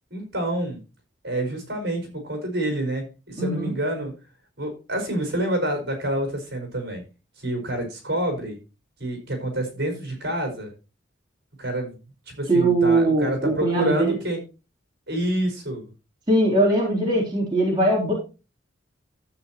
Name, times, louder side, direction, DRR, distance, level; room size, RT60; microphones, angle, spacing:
voice 1, 0.1-0.8 1.2-4.1 4.6-7.0 7.4-8.6 9.0-10.7 11.6-12.0 12.3-14.4 15.1-15.9, right 1 dB, 55° right, 4 dB, 5.1 m, -27 dB
voice 2, 3.4-3.7 12.5-14.2 16.3-18.1, right 2 dB, 25° right, -4 dB, 3.5 m, -21 dB
13.0 x 8.9 x 3.0 m, 0.30 s
head